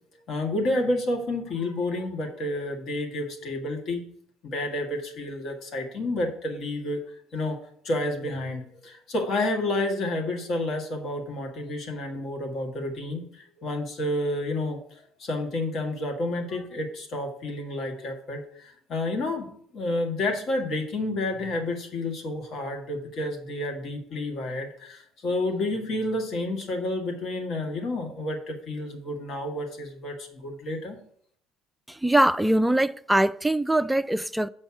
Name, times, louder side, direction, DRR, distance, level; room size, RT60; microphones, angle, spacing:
voice 1, 0.3-4.0 4.4-7.0 7.3-7.6 7.8-14.8 15.2-31.0, left 1 dB, 50° left, 1.7 m, -30 dB
voice 2, 31.9-34.5, right 1 dB, 5° right, 0.4 m, -22 dB
7.1 x 5.2 x 6.0 m
figure-of-eight pair, 60°, 0 cm